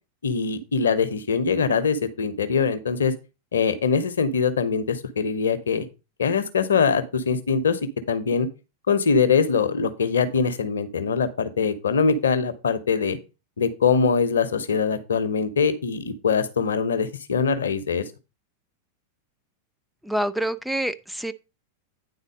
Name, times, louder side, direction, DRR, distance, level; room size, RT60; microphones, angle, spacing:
voice 1, 0.2-3.1 3.5-5.9 6.2-7.8 8.1-8.5 8.9-13.2 13.6-18.0, left 5 dB, 65° left, 0.9 m, -23 dB
voice 2, 20.0-21.3, right 1 dB, ahead, 0.4 m, -26 dB
9.5 x 4.0 x 5.1 m
figure-of-eight pair, 90°, 0 cm